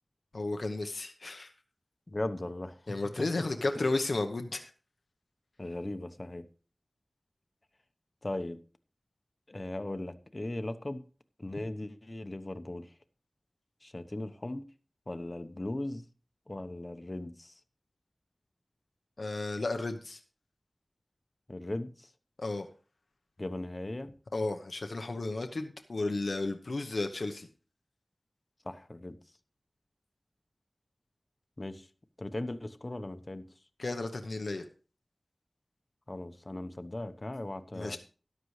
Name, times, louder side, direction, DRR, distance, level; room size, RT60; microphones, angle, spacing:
voice 1, 0.3-1.5 2.9-4.7 19.2-20.2 22.4-22.7 24.3-27.5 33.8-34.7 37.7-38.0, left 2 dB, 80° left, 0.9 m, -33 dB
voice 2, 2.1-3.5 5.6-6.5 8.2-8.6 9.5-11.0 11.4-12.9 13.8-14.6 15.1-16.1 16.5-17.6 21.5-22.1 23.4-24.1 28.6-29.2 31.6-31.9 32.2-33.5 36.1-38.0, left 1 dB, 40° left, 0.9 m, -38 dB
13.5 x 11.0 x 3.2 m
wide cardioid pair, 65°, 0 cm